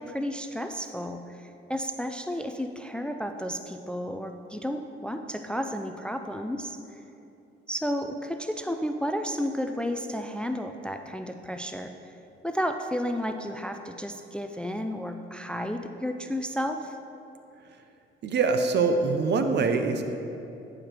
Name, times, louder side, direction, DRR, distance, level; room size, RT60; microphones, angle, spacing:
voice 1, 0.0-7.0 7.7-12.1 12.4-17.0, equal, 5° left, 6 dB, 0.3 m, -32 dB
voice 2, 18.2-20.0, right 4 dB, 60° right, 7 dB, 0.7 m, -24 dB
9.3 x 5.0 x 4.4 m, 2.8 s
cardioid pair, 90°, 20 cm